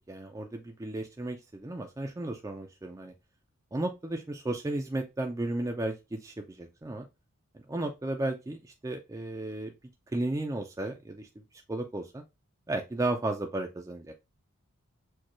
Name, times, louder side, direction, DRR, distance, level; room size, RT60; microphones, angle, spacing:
voice 1, 0.1-3.1 3.7-7.1 7.7-9.7 10.1-12.2 12.7-14.1, right 2 dB, 15° right, 3 dB, 0.4 m, -34 dB
6.4 x 2.3 x 3.0 m, 0.25 s
head